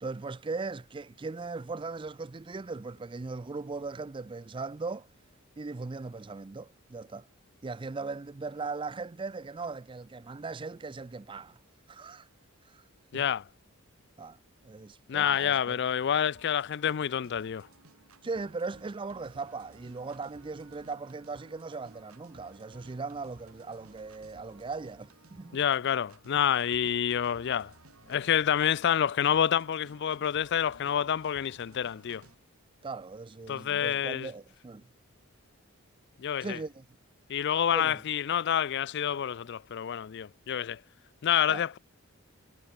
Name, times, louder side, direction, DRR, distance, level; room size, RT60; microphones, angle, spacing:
voice 1, 0.0-5.1 5.6-7.3 7.6-11.6 11.9-12.3 12.6-12.8 13.1-13.2 14.2-14.4 14.6-15.8 18.2-25.6 32.8-34.9 36.4-36.8 37.7-38.0 41.5-41.7, right 4 dB, 25° right, 0.4 m, -38 dB
voice 2, 13.1-13.4 15.1-17.7 25.5-27.7 28.1-32.2 33.5-34.3 36.2-36.6 37.3-40.8 41.2-41.8, left 9 dB, 55° left, 0.4 m, -28 dB
sound 1, 16.3-32.3, right 3 dB, 85° right, 3.5 m, -57 dB
head